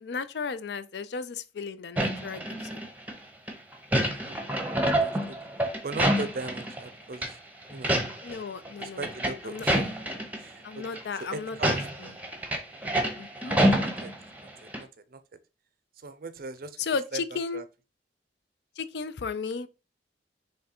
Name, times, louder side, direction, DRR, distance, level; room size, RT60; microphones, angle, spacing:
voice 1, 0.0-2.9 8.2-9.1 9.4-9.7 10.6-12.2 13.2-13.6 16.8-17.6 18.8-19.7, left 5 dB, 65° left, 0.4 m, -35 dB
sound 1, 2.0-3.1 3.5-6.9 7.1-7.3 7.7-8.4 8.7-10.4 10.8-11.0 11.5-14.5 14.7-14.8, right 1 dB, 10° right, 0.7 m, -27 dB
voice 2, 4.9-5.3 5.8-7.3 7.7-7.9 8.8-9.9 10.4-10.6 11.2-12.1 13.8-14.1 14.8-14.9 15.1-15.2 16.0-16.7 17.1-17.2 17.5-17.6, right 3 dB, 50° right, 0.5 m, -38 dB
3.8 x 3.2 x 4.3 m
head